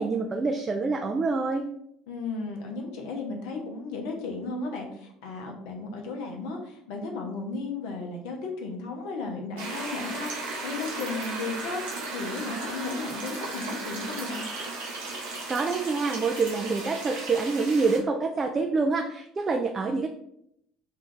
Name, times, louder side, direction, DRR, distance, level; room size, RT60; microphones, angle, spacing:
voice 1, 0.0-1.6 15.5-20.1, right 4 dB, 30° right, 3 dB, 0.3 m, -26 dB
voice 2, 2.1-14.4, left 3 dB, 60° left, 2 dB, 0.6 m, -35 dB
sound 1, 9.6-18.0, right 3 dB, 70° right, 0.7 m, -35 dB
2.5 x 2.3 x 3.7 m, 0.74 s
figure-of-eight pair, 60°, 0 cm